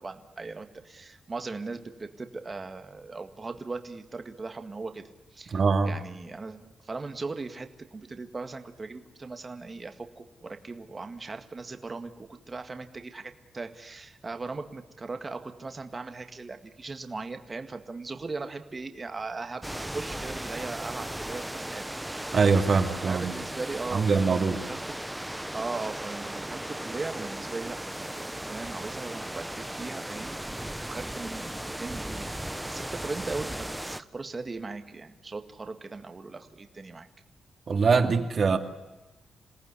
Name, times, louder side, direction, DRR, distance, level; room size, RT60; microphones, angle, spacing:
voice 1, 0.0-5.0 5.3-5.6 5.8-21.9 23.1-24.8 25.5-30.4 30.8-32.3 32.6-37.1, right 3 dB, 25° right, 7 dB, 1.9 m, -38 dB
voice 2, 5.5-5.9 22.3-23.3 23.9-24.6 37.7-38.6, right 4 dB, 45° right, 6 dB, 2.4 m, -23 dB
sound 1, 19.6-34.0, right 1 dB, 5° right, 0.8 m, -36 dB
27.5 x 18.5 x 9.9 m, 1.1 s
wide cardioid pair, 140°, 0 cm